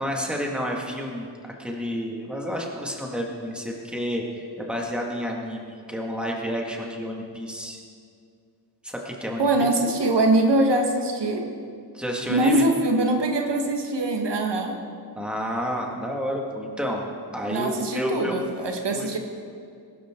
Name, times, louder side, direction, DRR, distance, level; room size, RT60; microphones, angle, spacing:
voice 1, 0.0-7.8 8.8-9.7 11.9-12.7 15.1-17.0 17.3-18.3 18.9-19.1, equal, ahead, -1 dB, 2.1 m, -30 dB
voice 2, 9.4-11.5 12.3-14.8 17.4-19.2, right 1 dB, 80° right, 3 dB, 1.6 m, -23 dB
21.0 x 12.5 x 3.8 m, 2.3 s
wide cardioid pair, 110°, 41 cm